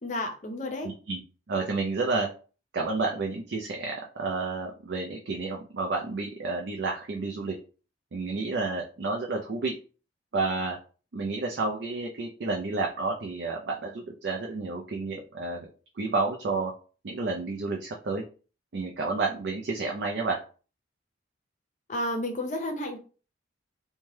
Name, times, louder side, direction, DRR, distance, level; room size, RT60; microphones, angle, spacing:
voice 1, 0.0-0.9 21.9-23.0, left 1 dB, 40° left, 4 dB, 0.6 m, -31 dB
voice 2, 0.8-1.2 1.5-2.3 2.7-7.5 8.1-9.7 10.3-10.8 11.1-15.7 16.0-16.7 17.0-18.2 18.7-20.4, right 3 dB, 60° right, 0 dB, 0.4 m, -30 dB
2.8 x 2.2 x 3.1 m, 0.37 s
head